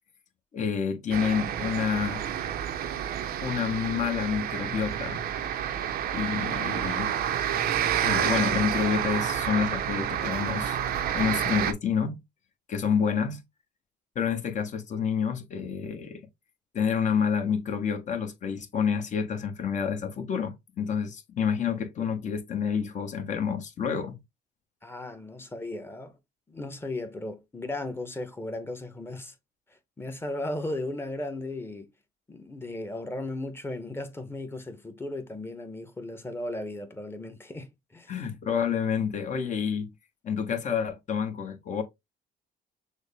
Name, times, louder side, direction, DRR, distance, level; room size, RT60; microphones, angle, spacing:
voice 1, 0.5-2.2 3.4-5.2 6.1-7.2 8.0-10.8 11.1-12.2 12.7-13.4 14.1-16.2 16.7-24.2 38.1-39.9 40.2-41.8, left 7 dB, 45° left, 1.0 m, -28 dB
sound 1, 1.1-11.7, right 9 dB, 65° right, 0.7 m, -29 dB
voice 2, 24.8-26.2 26.5-29.3 30.0-31.9 32.3-38.2, left 2 dB, 15° left, 0.9 m, -36 dB
6.2 x 2.1 x 3.4 m
cardioid pair, 110°, 17 cm